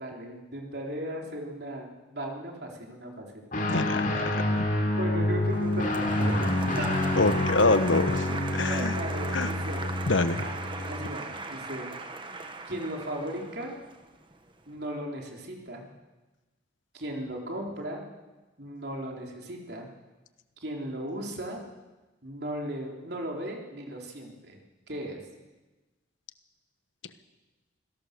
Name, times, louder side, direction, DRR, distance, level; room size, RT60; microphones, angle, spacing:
voice 1, 0.0-3.4 4.6-6.4 6.8-7.1 8.1-8.4 8.6-10.0 10.4-12.0 12.7-13.7 14.7-15.9 16.9-18.1 18.6-19.9 20.6-21.6 22.2-24.6 24.9-25.2, right 1 dB, 55° right, 0 dB, 3.8 m, -37 dB
Guitar, 3.5-11.2, left 1 dB, 45° left, 3.5 m, -28 dB
voice 2, 3.7-4.6 7.2-8.3 8.5-8.9 9.3-9.5 10.1-10.4, left 3 dB, 85° left, 11 dB, 1.2 m, -25 dB
Applause, 5.4-14.5, right 3 dB, 25° right, 1.4 m, -38 dB
26.0 x 17.5 x 6.8 m, 1.2 s
head